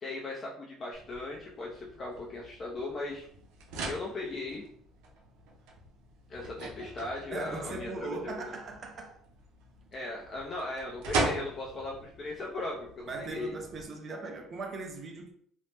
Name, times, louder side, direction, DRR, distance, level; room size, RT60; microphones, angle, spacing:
voice 1, 0.0-3.3 3.8-4.6 6.3-8.3 9.9-13.5, left 2 dB, 25° left, 0.4 m, -38 dB
sound 1, 0.9-13.9, right 3 dB, 85° right, 0.7 m, -40 dB
voice 2, 7.3-9.2 13.1-15.3, right 3 dB, 30° right, 0.4 m, -39 dB
2.9 x 2.0 x 3.2 m
cardioid pair, 155°, 0 cm